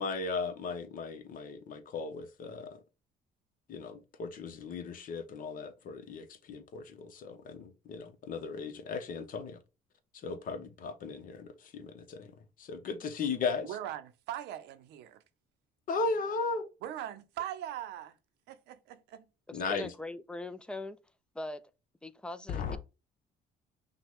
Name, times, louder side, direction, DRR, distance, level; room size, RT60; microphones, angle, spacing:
voice 1, 0.0-2.8 3.7-9.6 10.2-12.3 12.6-13.8 15.9-16.6 19.5-19.9 22.5-22.8, left 4 dB, 55° left, 1.0 m, -36 dB
voice 2, 13.6-15.2 16.8-18.1 18.5-19.2, right 11 dB, 85° right, 0.7 m, -40 dB
voice 3, 19.5-21.0 21.3-21.6 22.0-22.8, left 2 dB, 5° left, 0.4 m, -41 dB
5.9 x 2.3 x 3.6 m
cardioid pair, 110°, 17 cm